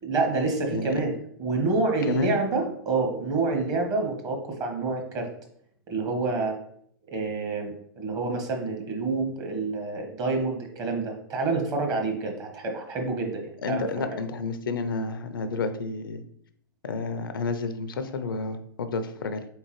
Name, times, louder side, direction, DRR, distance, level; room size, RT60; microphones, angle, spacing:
voice 1, 0.0-1.1 1.4-5.3 5.9-6.6 7.1-13.8 14.1-14.2, right 3 dB, 30° right, 2 dB, 1.0 m, -28 dB
voice 2, 13.6-16.2 16.8-19.5, left 4 dB, 70° left, 9 dB, 0.5 m, -30 dB
3.9 x 3.6 x 3.0 m, 0.66 s
figure-of-eight pair, 105°, 12 cm